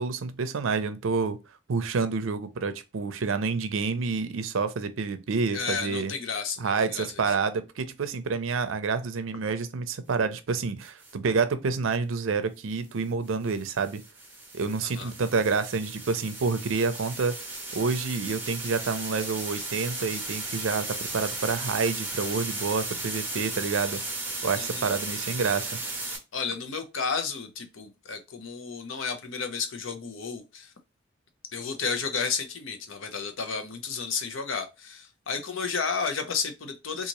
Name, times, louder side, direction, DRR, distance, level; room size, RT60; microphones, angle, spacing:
voice 1, 0.0-1.4 1.7-6.1 6.6-14.0 14.5-17.4 17.7-24.0 24.4-25.8, right 4 dB, 80° right, 0.5 m, -28 dB
voice 2, 5.5-7.2 14.8-15.1 24.6-24.9 26.3-30.7 31.5-37.1, left 5 dB, 80° left, 0.7 m, -32 dB
sound 1, 10.8-11.1 13.3-26.2, right 2 dB, 10° right, 0.8 m, -35 dB
3.9 x 2.5 x 2.9 m
head